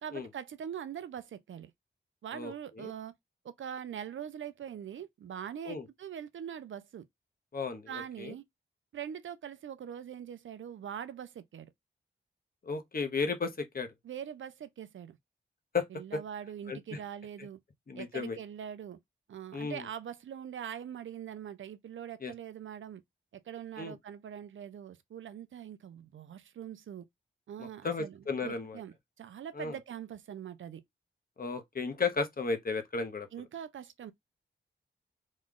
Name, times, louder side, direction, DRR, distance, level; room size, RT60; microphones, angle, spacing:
voice 1, 0.0-1.7 2.2-3.1 3.4-7.1 7.9-8.4 8.9-11.7 14.0-15.2 15.9-17.6 17.9-19.0 19.3-23.0 23.3-27.1 27.5-30.8 33.3-34.1, right 9 dB, 75° right, 0.5 m, -43 dB
voice 2, 2.3-2.9 5.6-5.9 7.5-8.3 12.6-13.9 15.7-15.9 16.1-16.2 16.7-17.0 17.9-18.4 19.5-19.9 22.2-22.3 23.8-24.0 27.6-28.8 29.5-29.8 31.4-33.3, left 4 dB, 45° left, 1.0 m, -34 dB
3.1 x 2.4 x 3.7 m
cardioid pair, 55°, 21 cm